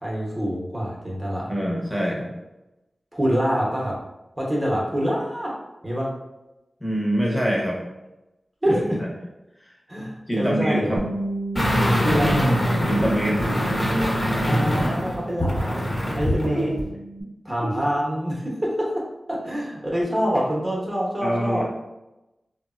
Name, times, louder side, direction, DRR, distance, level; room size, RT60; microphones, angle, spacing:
voice 1, 0.0-1.5 3.1-3.9 4.4-5.5 5.8-6.1 8.6-9.0 9.9-11.0 12.0-12.5 14.4-15.9 16.1-16.7 17.4-18.9 19.3-21.6, equal, 20° right, -4 dB, 0.8 m, -25 dB
voice 2, 1.5-2.3 6.8-7.8 8.7-9.1 9.6-9.7 10.3-11.0 12.9-13.4 16.7-16.8 21.2-21.6, equal, 5° left, -3 dB, 0.9 m, -24 dB
Bass guitar, 11.0-17.2, right 2 dB, 70° right, 0.5 m, -34 dB
sound 1, 11.6-16.5 16.8-16.9, equal, 30° left, 1.0 m, -23 dB
3.2 x 2.1 x 2.4 m, 0.96 s
wide cardioid pair, 55°, 0 cm